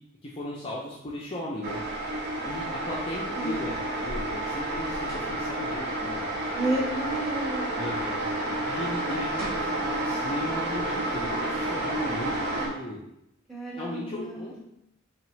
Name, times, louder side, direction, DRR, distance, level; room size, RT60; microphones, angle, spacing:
voice 1, 0.2-1.8 2.4-6.3 7.7-8.3 8.7-13.0 13.7-14.6, left 1 dB, 25° left, -5 dB, 0.5 m, -36 dB
sound 1, 1.6-12.7, right 1 dB, 50° right, 0.8 m, -30 dB
sound 2, 5.1-5.4 9.0-9.1 9.4-9.7, right 1 dB, 75° right, 1.5 m, -40 dB
voice 2, 6.5-7.8 13.5-14.5, right 1 dB, ahead, -6 dB, 1.1 m, -31 dB
3.6 x 3.3 x 3.1 m, 0.83 s
head